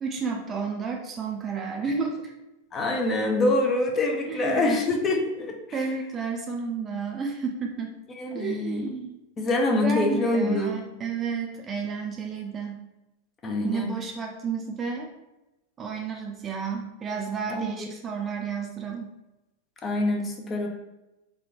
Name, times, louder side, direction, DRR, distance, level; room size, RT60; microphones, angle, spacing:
voice 1, 0.0-2.3 4.3-4.8 5.7-7.9 8.3-9.2 9.7-12.8 13.6-15.1 15.8-19.1, right 5 dB, 25° right, 2 dB, 0.4 m, -31 dB
voice 2, 2.7-5.5 8.2-8.9 9.4-10.8 13.4-13.9 17.5-17.7 19.8-20.7, left 2 dB, 25° left, 2 dB, 0.5 m, -25 dB
3.5 x 2.2 x 3.0 m, 0.97 s
figure-of-eight pair, 90°, 0 cm